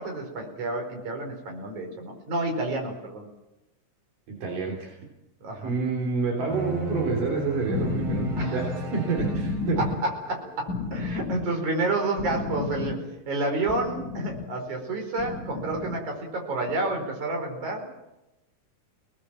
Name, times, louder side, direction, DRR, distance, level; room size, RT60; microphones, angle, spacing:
voice 1, 0.0-3.3 5.4-5.8 8.4-8.7 9.8-13.0 13.3-17.9, right 2 dB, 60° right, 2 dB, 6.1 m, -30 dB
voice 2, 4.3-5.0 5.6-8.6 8.9-9.8, right 4 dB, 80° right, 0 dB, 4.8 m, -28 dB
sound 1, 6.5-10.3, right 1 dB, 40° right, 4.0 m, -33 dB
sound 2, 7.2-14.4 15.1-15.9 16.6-16.7, left 3 dB, 30° left, 1.8 m, -33 dB
27.0 x 19.0 x 7.6 m, 0.96 s
omnidirectional pair, 3.8 m